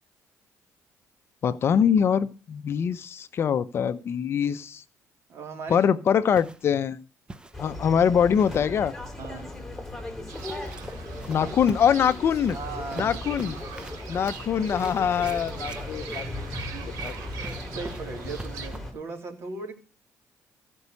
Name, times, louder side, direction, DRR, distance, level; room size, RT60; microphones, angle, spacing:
voice 1, 1.4-4.8 5.7-7.0 7.6-8.9 11.3-12.6 13.0-13.6 14.1-16.2 17.0-17.1, left 8 dB, 45° left, 0.6 m, -23 dB
voice 2, 5.3-5.9 9.2-9.6 11.4-11.5 12.5-13.3 15.1-15.2 16.7-17.0 17.7-19.7, right 3 dB, 45° right, 3.1 m, -38 dB
sound 1, 6.3-6.7 7.3-7.8 8.4-8.8 10.3-18.8, right 2 dB, 15° right, 0.7 m, -45 dB
sound 2, 7.5-18.9, left 1 dB, 5° left, 2.9 m, -37 dB
Fowl / Bird, 10.3-18.7, right 7 dB, 90° right, 2.1 m, -42 dB
15.5 x 5.4 x 8.2 m
cardioid pair, 135°, 6 cm